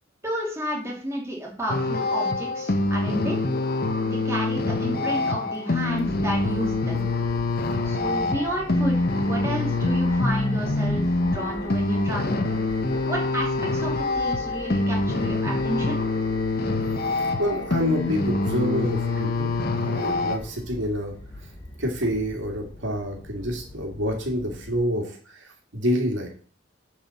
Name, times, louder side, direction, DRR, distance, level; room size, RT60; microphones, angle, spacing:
voice 1, 0.2-3.4 4.0-7.1 7.8-12.4 13.1-16.0, right 1 dB, 15° right, -3 dB, 2.5 m, -31 dB
sound 1, 1.7-20.4, left 2 dB, 50° left, 0.9 m, -25 dB
sound 2, 5.8-24.8, left 1 dB, 25° left, 2.6 m, -42 dB
voice 2, 17.1-21.1 21.8-26.3, equal, 70° right, 1 dB, 2.3 m, -28 dB
7.1 x 4.8 x 7.0 m, 0.43 s
head